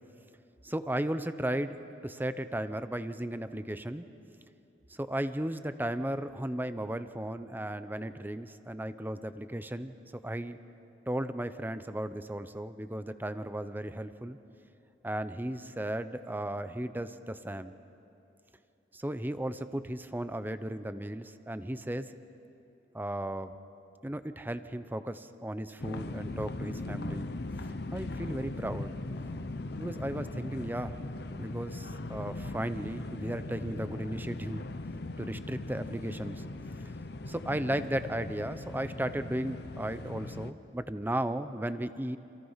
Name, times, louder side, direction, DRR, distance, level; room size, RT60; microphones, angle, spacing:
voice 1, 0.6-4.1 4.9-9.9 10.2-10.6 11.1-14.4 15.0-17.8 18.9-22.1 22.9-23.6 24.0-27.3 27.9-28.9 29.8-31.0 31.4-34.6 35.2-36.4 37.3-42.2, right 1 dB, 10° right, 11 dB, 0.8 m, -35 dB
sound 1, 25.8-40.5, left 2 dB, 65° left, 0.9 m, -39 dB
29.0 x 27.5 x 5.8 m, 2.8 s
head